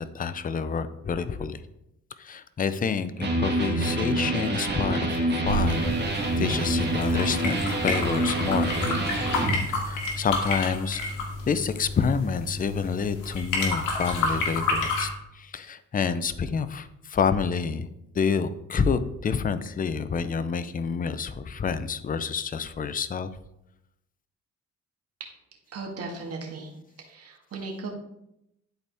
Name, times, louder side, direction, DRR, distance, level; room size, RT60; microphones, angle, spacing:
voice 1, 0.0-1.6 2.2-5.9 6.4-9.2 9.7-11.0 11.5-15.1 15.3-17.9 18.1-23.3, left 6 dB, 30° left, 12 dB, 0.5 m, -28 dB
Electric guitar, 3.2-9.6, right 1 dB, 35° right, 1.5 m, -26 dB
sound 1, 5.4-15.1, left 2 dB, 85° left, 1.7 m, -30 dB
voice 2, 25.7-26.7 27.0-27.9, right 3 dB, 50° right, 1 dB, 1.9 m, -37 dB
11.5 x 4.2 x 3.5 m, 0.83 s
cardioid pair, 90°, 30 cm